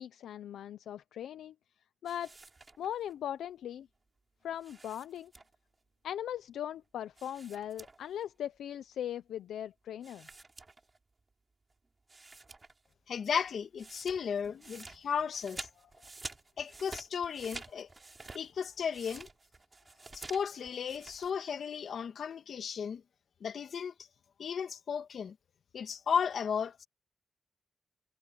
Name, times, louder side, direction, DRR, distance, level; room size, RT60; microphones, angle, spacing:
voice 1, 0.0-1.5 2.0-2.4 2.8-3.9 4.4-5.3 6.0-10.3, left 10 dB, 90° left, 0.6 m, -39 dB
sound 1, 2.1-3.1 4.6-5.7 7.2-8.2 8.5-8.6 10.0-11.2 11.7-11.8 12.1-12.9 13.2-21.3, right 3 dB, 35° right, 3.5 m, -50 dB
voice 2, 13.1-15.7 16.6-17.9 18.3-19.3 20.1-23.0 23.4-23.9 24.4-25.3 25.7-26.9, left 7 dB, 70° left, 1.7 m, -34 dB
cardioid pair, 60°, 0 cm